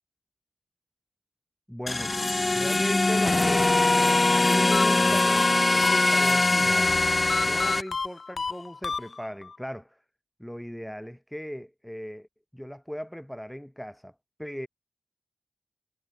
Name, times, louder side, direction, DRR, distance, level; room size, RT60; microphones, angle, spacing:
voice 1, 1.7-2.2 2.5-3.9 4.3-6.9 7.4-10.0 10.4-12.3 12.5-14.7, equal, 5° left, 7.2 m, -37 dB
sound 1, 1.9-7.8, left 2 dB, 30° left, 0.4 m, -22 dB
sound 2, 4.7-6.5 7.3-9.6, left 4 dB, 55° left, 2.6 m, -32 dB
wide cardioid pair, 100°, 0 cm